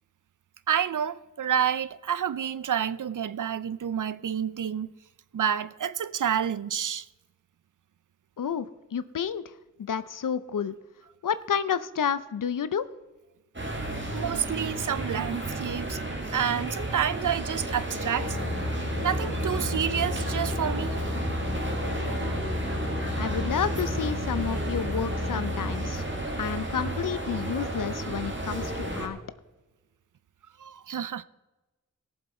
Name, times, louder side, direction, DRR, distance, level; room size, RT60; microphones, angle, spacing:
voice 1, 0.7-4.9 5.3-7.1 14.1-16.0 16.3-18.4 19.0-21.0 30.6-31.2, right 8 dB, 65° right, 0.6 m, -29 dB
voice 2, 8.4-9.4 9.8-10.8 11.2-12.9 23.2-26.0 26.4-29.2, left 7 dB, 70° left, 0.6 m, -30 dB
shopping mall sounds, 13.5-29.1, right 1 dB, 35° right, 2.0 m, -33 dB
sound 1, 18.2-25.9, left 2 dB, 45° left, 2.4 m, -32 dB
18.0 x 7.4 x 4.3 m
wide cardioid pair, 65°, 33 cm